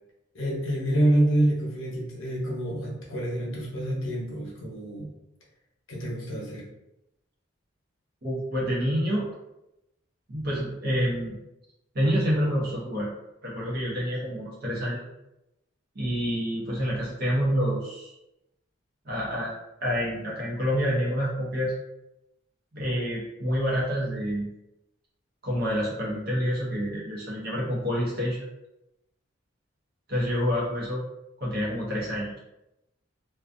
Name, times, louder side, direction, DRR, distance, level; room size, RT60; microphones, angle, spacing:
voice 1, 0.3-5.1 5.9-6.7, right 1 dB, 75° left, -2 dB, 0.7 m, -27 dB
voice 2, 8.2-9.3 10.3-11.4 11.9-13.1 13.4-15.0 15.9-18.1 19.0-21.7 22.7-24.5 25.4-28.5 30.1-31.0 31.4-32.4, equal, 50° right, -5 dB, 0.7 m, -28 dB
2.5 x 2.2 x 2.4 m, 0.89 s
head